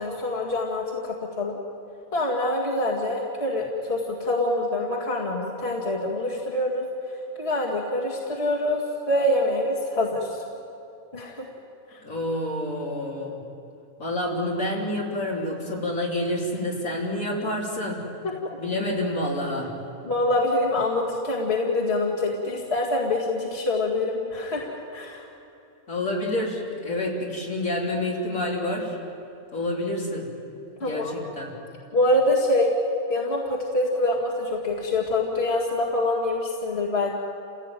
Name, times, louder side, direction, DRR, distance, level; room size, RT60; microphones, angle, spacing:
voice 1, 0.0-1.6 2.1-6.9 7.4-10.4 11.1-11.5 18.4-18.6 20.1-25.2 30.8-31.1 31.9-32.7 33.1-37.1, left 1 dB, 45° left, -3 dB, 2.5 m, -25 dB
voice 2, 12.0-13.4 14.0-18.1 18.6-19.7 25.9-29.0 29.5-30.3 30.8-31.5, left 1 dB, 75° left, -3 dB, 4.5 m, -28 dB
29.5 x 16.5 x 9.1 m, 2.8 s
omnidirectional pair, 1.4 m